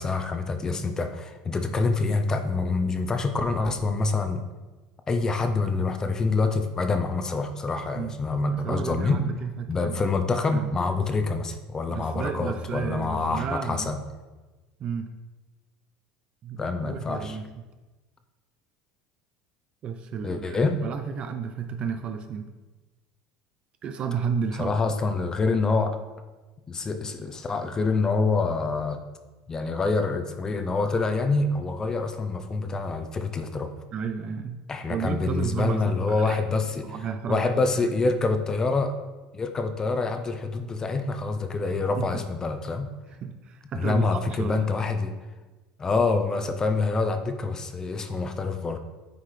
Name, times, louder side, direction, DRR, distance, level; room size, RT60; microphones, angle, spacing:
voice 1, 0.0-4.4 5.1-9.2 9.7-14.0 16.6-17.4 20.2-20.8 24.6-26.0 26.7-29.0 29.5-33.7 34.7-36.9 37.3-38.9 39.3-42.9 43.7-45.1 45.8-48.8, left 3 dB, 20° left, 7 dB, 0.6 m, -26 dB
voice 2, 8.4-10.0 10.5-10.7 11.9-13.9 14.8-15.1 16.4-17.4 19.8-22.5 23.8-24.7 33.9-34.6 34.9-36.4 36.8-37.5 38.0-38.1 42.0-42.2 43.1-44.7, right 6 dB, 40° right, 7 dB, 0.5 m, -32 dB
9.3 x 4.8 x 3.2 m, 1.2 s
supercardioid pair, 125°, 3 cm